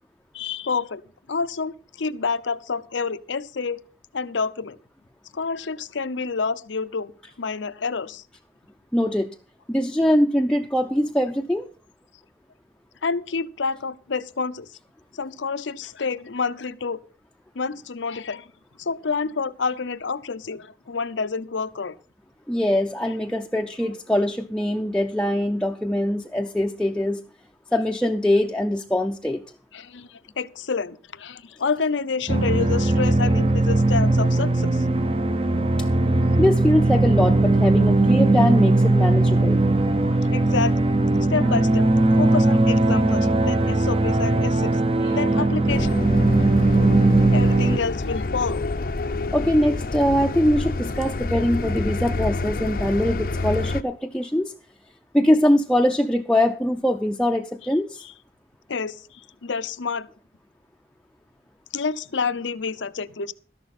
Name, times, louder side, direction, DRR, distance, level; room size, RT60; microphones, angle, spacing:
voice 1, 0.3-1.0 1.3-3.8 4.1-4.8 5.3-7.1 7.4-8.2 13.0-14.7 15.1-17.0 17.5-18.5 18.8-21.9 29.7-34.8 40.0-40.9 41.2-41.9 42.2-46.0 47.3-48.6 58.0-58.1 58.7-60.1 61.7-63.3, left 5 dB, 85° left, 0.7 m, -28 dB
voice 2, 8.9-9.3 9.7-11.7 22.5-27.2 27.7-29.4 35.8-35.9 36.4-39.6 49.3-54.5 55.1-58.0, left 1 dB, 5° left, 0.6 m, -22 dB
sound 1, 32.3-47.8, right 2 dB, 30° right, 0.7 m, -19 dB
sound 2, 45.7-53.8, left 2 dB, 50° left, 0.6 m, -28 dB
13.5 x 11.5 x 4.2 m
head